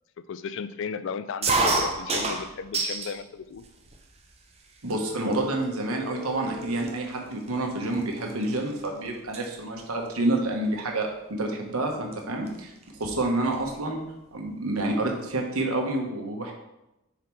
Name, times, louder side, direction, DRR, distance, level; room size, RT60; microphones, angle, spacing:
voice 1, 0.3-3.6, left 6 dB, 60° left, 12 dB, 0.3 m, -35 dB
sound 1, 1.4-3.2 3.6-4.2 4.9-5.0 5.3-5.6 6.3-6.4 6.6-8.9 9.1-9.5 10.8-11.0 12.1-12.2 12.5-12.6 12.8-13.7, right 3 dB, 30° right, 0.6 m, -28 dB
voice 2, 4.8-12.7 13.0-14.0 14.3-16.5, right 2 dB, 85° right, 1 dB, 1.2 m, -28 dB
Telephone, 4.9-6.9, left 3 dB, 80° left, 1.8 m, -40 dB
7.0 x 4.7 x 3.2 m, 0.91 s
head